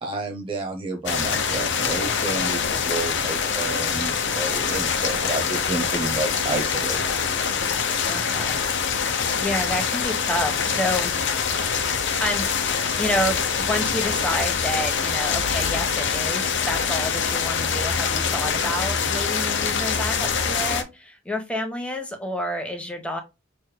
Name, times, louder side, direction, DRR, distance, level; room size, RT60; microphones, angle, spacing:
voice 1, 0.0-7.2, right 2 dB, 25° right, 0.7 m, -30 dB
sound 1, 1.1-20.8, left 6 dB, 65° left, 0.8 m, -24 dB
voice 2, 8.0-11.2 12.2-23.2, left 1 dB, 5° left, 1.1 m, -29 dB
6.2 x 3.4 x 2.2 m
head